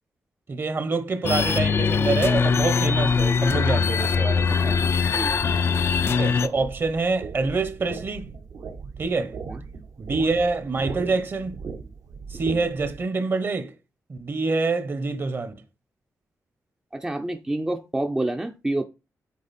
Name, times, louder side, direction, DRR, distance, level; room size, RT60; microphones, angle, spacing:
voice 1, 0.5-4.6 6.1-8.3 9.0-9.4 10.0-11.6 12.3-13.7 14.1-15.5, right 3 dB, 40° right, 1.0 m, -26 dB
sound 1, 1.2-6.5, left 5 dB, 45° left, 0.4 m, -22 dB
voice 2, 4.5-5.3 9.5-9.6 16.9-18.8, right 1 dB, 10° right, 0.5 m, -28 dB
sound 2, 5.3-13.0, right 5 dB, 75° right, 1.3 m, -38 dB
8.6 x 4.1 x 4.2 m
wide cardioid pair, 125°, 6 cm